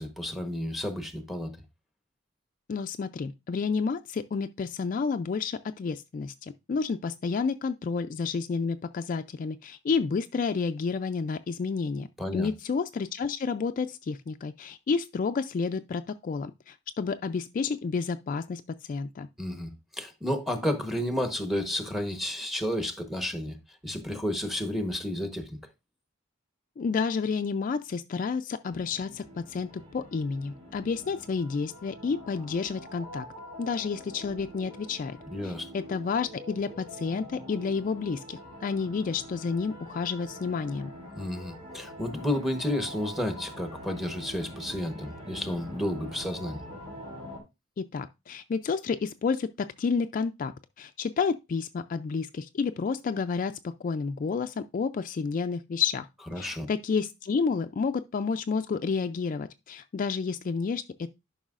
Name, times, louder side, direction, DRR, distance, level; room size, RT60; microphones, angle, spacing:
voice 1, 0.0-1.5 12.2-12.5 19.4-23.6 23.8-25.6 35.3-35.7 41.2-46.6 56.3-56.7, left 1 dB, ahead, 1.0 m, -31 dB
voice 2, 2.7-12.1 12.3-19.3 26.8-33.3 33.6-35.2 35.4-40.9 47.8-56.1 56.4-61.1, left 5 dB, 45° left, 0.3 m, -30 dB
sound 1, 28.7-47.4, equal, 35° right, 3.4 m, -45 dB
11.5 x 5.4 x 2.4 m
head